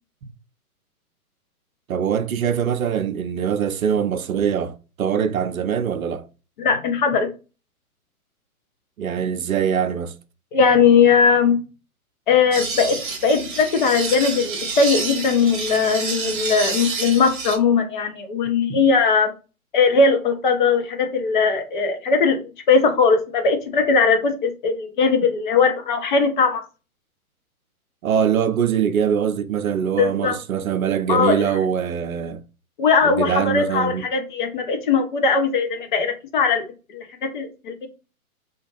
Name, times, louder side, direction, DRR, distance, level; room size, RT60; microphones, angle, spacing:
voice 1, 1.9-6.3 9.0-10.1 18.7-18.8 28.0-32.4 33.0-34.1, right 8 dB, 70° right, 0.5 m, -23 dB
voice 2, 6.6-7.3 10.5-11.6 12.3-19.3 19.7-22.4 22.7-26.6 30.0-30.4 31.1-31.4 32.8-36.6 36.9-37.9, left 5 dB, 35° left, 0.6 m, -19 dB
sound 1, 12.5-17.6, right 4 dB, 35° right, 0.8 m, -29 dB
2.5 x 2.3 x 3.0 m
figure-of-eight pair, 120°, 44 cm